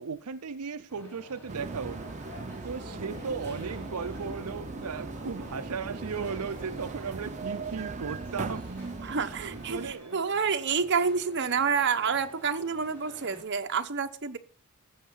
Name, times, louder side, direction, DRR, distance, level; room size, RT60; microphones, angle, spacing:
voice 1, 0.0-2.1 2.6-8.7 9.3-10.2, right 5 dB, 90° right, 0.6 m, -36 dB
sound 1, 0.9-13.4, equal, 10° left, 5.3 m, -50 dB
sound 2, 1.5-9.9, right 3 dB, 35° right, 0.6 m, -39 dB
sound 3, 2.8-8.7, equal, 40° left, 1.8 m, -49 dB
voice 2, 9.0-14.4, right 5 dB, 55° right, 1.0 m, -28 dB
14.0 x 7.3 x 5.6 m
head